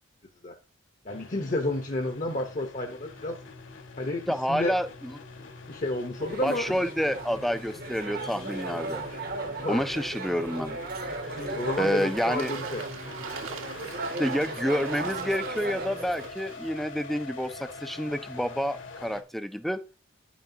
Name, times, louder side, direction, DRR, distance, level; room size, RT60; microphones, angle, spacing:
voice 1, 1.0-3.4 4.0-4.7 5.7-6.8 9.6-9.9 11.3-12.8, left 1 dB, 40° left, 0.8 m, -31 dB
sound 1, 1.1-19.2, left 3 dB, 70° left, 1.5 m, -44 dB
voice 2, 4.3-5.1 6.4-9.0 9.7-10.8 11.8-12.5 14.2-19.8, equal, ahead, 0.3 m, -29 dB
sound 2, 6.2-16.3, right 3 dB, 45° right, 0.9 m, -36 dB
Bird / Water, 10.0-16.7, right 5 dB, 85° right, 1.5 m, -44 dB
9.5 x 7.2 x 2.7 m
head